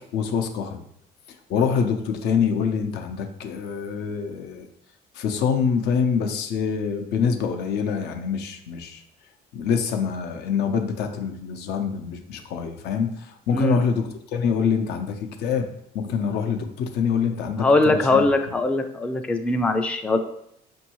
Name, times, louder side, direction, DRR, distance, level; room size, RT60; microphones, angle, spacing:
voice 1, 0.1-0.8 1.5-4.7 5.2-9.0 9.5-15.7 15.9-18.3, left 6 dB, 80° left, 5 dB, 0.6 m, -25 dB
voice 2, 13.5-13.8 17.6-20.2, left 2 dB, 5° left, 6 dB, 0.3 m, -21 dB
5.3 x 2.6 x 2.9 m, 0.72 s
cardioid pair, 110°, 17 cm